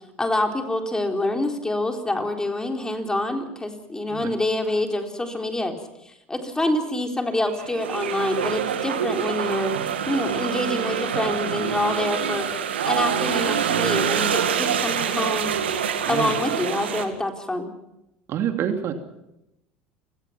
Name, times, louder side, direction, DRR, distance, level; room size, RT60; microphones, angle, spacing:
voice 1, 0.2-5.7 6.0-9.8 10.1-12.5 12.9-15.5 16.1-17.7, left 1 dB, 10° left, 4 dB, 4.0 m, -26 dB
sound 1, 7.5-17.1, right 8 dB, 90° right, 2.1 m, -25 dB
voice 2, 18.3-18.9, right 9 dB, 50° right, 6 dB, 2.7 m, -26 dB
29.5 x 18.0 x 5.9 m, 0.87 s
hypercardioid pair, 80°, 6 cm